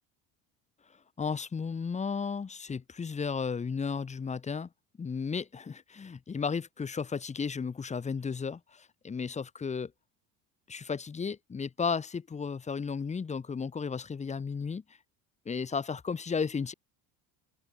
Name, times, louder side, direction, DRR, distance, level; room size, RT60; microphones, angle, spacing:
voice 1, 1.2-4.7 5.0-9.9 10.7-14.8 15.4-16.7, left 5 dB, 20° left, 1.1 m, -34 dB
open air
supercardioid pair, 105°, 36 cm